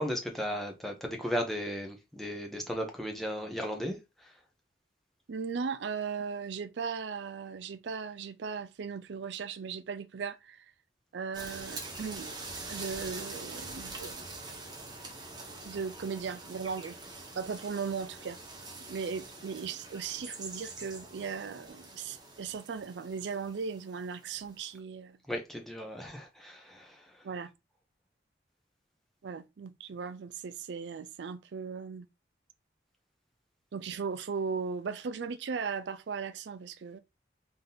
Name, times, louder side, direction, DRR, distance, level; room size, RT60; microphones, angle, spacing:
voice 1, 0.0-4.3 25.3-27.2, equal, ahead, 0.7 m, -35 dB
voice 2, 5.3-10.7 11.1-12.3 12.7-14.3 15.6-17.0 17.4-18.4 18.9-25.2 27.2-27.5 29.2-32.1 33.7-37.0, right 5 dB, 75° right, 0.4 m, -37 dB
sound 1, 11.3-24.7, right 3 dB, 25° right, 0.9 m, -44 dB
3.6 x 2.8 x 3.8 m
head